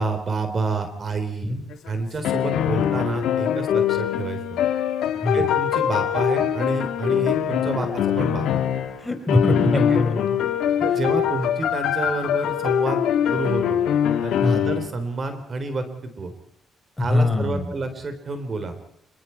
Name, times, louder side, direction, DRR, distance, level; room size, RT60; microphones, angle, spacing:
voice 1, 0.0-1.6 1.9-4.6 5.3-8.5 9.9-10.0 10.8-13.0 13.3-13.8 14.2-15.9 16.2-16.3 17.0-18.7, right 3 dB, 40° right, 8 dB, 3.7 m, -28 dB
sound 1, 1.7-9.0 9.3-14.9, left 9 dB, 80° left, 2.4 m, -23 dB
voice 2, 5.1-5.5 9.0-10.4 10.9-11.0 14.4-14.7 17.0-17.7, left 2 dB, 15° left, 6 dB, 4.7 m, -23 dB
27.0 x 23.0 x 4.5 m, 0.67 s
cardioid pair, 90°, 0 cm